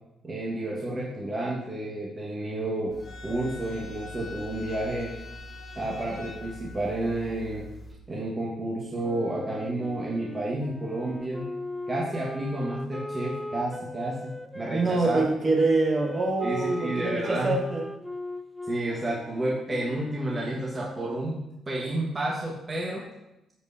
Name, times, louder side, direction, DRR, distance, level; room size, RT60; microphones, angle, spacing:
voice 1, 0.2-2.9 3.2-5.1 5.7-7.7 8.1-11.5 11.9-15.2 16.4-17.5 18.7-23.1, right 1 dB, 25° right, -4 dB, 1.5 m, -31 dB
sound 1, 2.9-7.9, left 1 dB, 45° left, 1.4 m, -42 dB
Wind instrument woodwind instrument, 9.0-14.9 15.6-21.4, left 1 dB, ahead, 0.4 m, -39 dB
voice 2, 14.7-17.9, right 3 dB, 50° right, -2 dB, 2.0 m, -25 dB
13.0 x 4.6 x 2.7 m, 0.90 s
cardioid pair, 90°, 0 cm